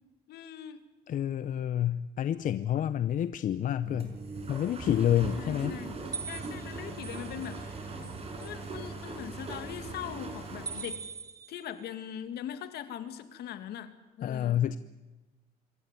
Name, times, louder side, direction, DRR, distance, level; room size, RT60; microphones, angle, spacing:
voice 1, 0.3-0.8 5.4-7.6 8.4-11.0 11.5-13.9 14.2-14.7, left 10 dB, 70° left, 10 dB, 2.3 m, -41 dB
voice 2, 1.1-4.2 4.5-5.8 14.2-14.8, left 10 dB, 50° left, 14 dB, 0.8 m, -28 dB
sound 1, 3.8-10.8, right 3 dB, 35° right, 5.7 m, -40 dB
sound 2, 6.1-7.7 8.0-8.5 10.7-11.8, right 4 dB, 20° right, 1.0 m, -41 dB
26.5 x 15.0 x 9.9 m, 1.1 s
cardioid pair, 110°, 17 cm